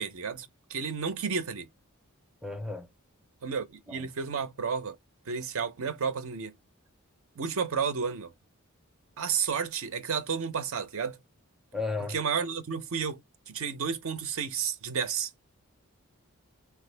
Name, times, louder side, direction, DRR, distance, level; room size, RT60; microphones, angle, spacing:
voice 1, 0.0-1.7 3.4-5.0 5.3-6.5 7.4-8.3 9.2-11.2 12.1-13.2 13.5-15.3, right 6 dB, 70° right, 0.6 m, -31 dB
voice 2, 2.4-2.9 3.9-4.1 11.7-12.1, left 3 dB, ahead, 0.4 m, -34 dB
3.4 x 2.3 x 3.2 m
head